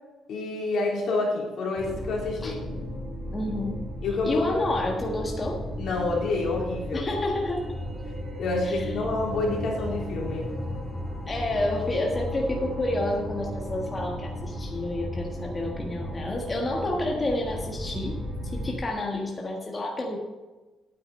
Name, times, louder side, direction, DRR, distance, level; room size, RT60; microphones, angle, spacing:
voice 1, 0.3-2.6 4.0-4.7 5.8-7.1 8.4-10.5, left 3 dB, 70° left, -3 dB, 3.6 m, -28 dB
sound 1, 1.8-18.7, equal, 25° right, 3.8 m, -35 dB
voice 2, 3.3-3.8 4.2-5.6 6.9-7.6 8.6-8.8 11.3-18.2 18.5-20.2, left 1 dB, 30° left, -1 dB, 1.6 m, -29 dB
9.4 x 8.9 x 5.5 m, 1.2 s
cardioid pair, 90°, 0 cm